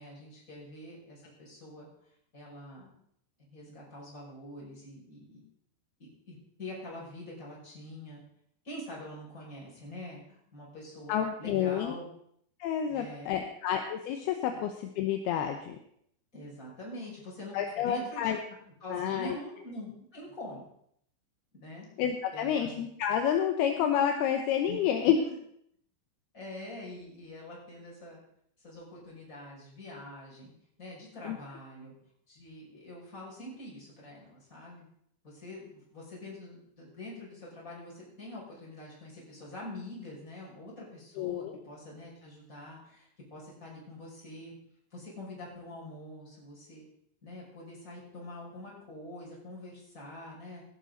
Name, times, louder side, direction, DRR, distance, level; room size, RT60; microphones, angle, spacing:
voice 1, 0.0-1.9 2.3-2.9 3.5-5.4 6.3-8.2 8.6-12.1 12.8-13.4 14.5-14.6 16.3-18.3 18.8-20.7 21.5-21.9 22.3-22.8 24.7-24.8 25.2-25.3 26.3-28.2 28.6-30.5 30.8-31.9 32.3-34.8 35.2-44.5 44.9-46.8 47.2-50.6, left 1 dB, 15° left, -6 dB, 6.3 m, -45 dB
voice 2, 11.1-11.9 12.6-15.8 17.5-18.4 18.9-19.4 22.0-25.2 31.2-31.4 41.2-41.6, left 9 dB, 75° left, 5 dB, 2.4 m, -29 dB
17.5 x 11.5 x 4.0 m, 0.69 s
omnidirectional pair, 5.4 m